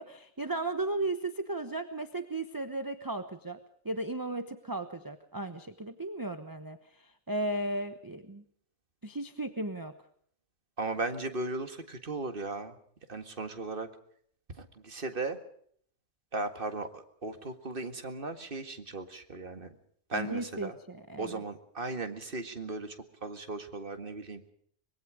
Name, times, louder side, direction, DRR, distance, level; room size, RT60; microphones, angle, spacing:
voice 1, 0.0-3.6 3.8-8.4 9.0-9.9 20.1-21.4, right 2 dB, 15° right, 9 dB, 1.0 m, -35 dB
voice 2, 10.8-12.8 13.1-13.9 14.6-15.4 16.3-19.7 20.1-20.8 21.2-24.5, right 3 dB, 40° right, 8 dB, 2.0 m, -37 dB
24.5 x 22.0 x 5.0 m, 0.63 s
omnidirectional pair, 1.4 m